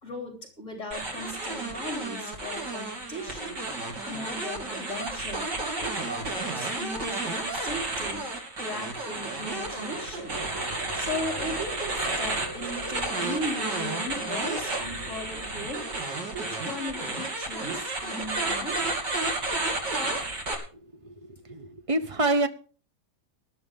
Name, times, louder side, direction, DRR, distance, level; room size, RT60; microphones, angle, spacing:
voice 1, 0.0-3.6 4.1-5.5 5.8-8.3 8.6-10.4 10.7-18.8, left 1 dB, 45° left, 3.7 m, -37 dB
sound 1, 0.9-20.5, right 2 dB, 80° right, 3.6 m, -32 dB
sound 2, 8.8-20.2, right 2 dB, 60° right, 3.7 m, -45 dB
voice 2, 21.0-22.5, right 2 dB, 25° right, 0.8 m, -27 dB
19.5 x 12.0 x 3.7 m
omnidirectional pair, 1.9 m